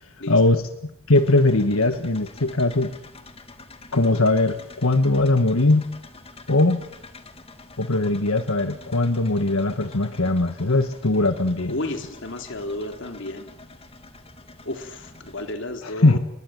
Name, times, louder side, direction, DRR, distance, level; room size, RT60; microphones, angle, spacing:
voice 1, 0.0-2.9 3.9-5.9 6.5-6.8 7.8-11.7 15.8-16.2, left 2 dB, 90° left, 8 dB, 1.6 m, -20 dB
sound 1, 1.1-15.5, left 3 dB, 30° left, 2.2 m, -46 dB
voice 2, 11.7-13.5 14.6-16.2, left 1 dB, 60° left, 5 dB, 3.8 m, -32 dB
28.5 x 23.0 x 7.9 m, 0.75 s
head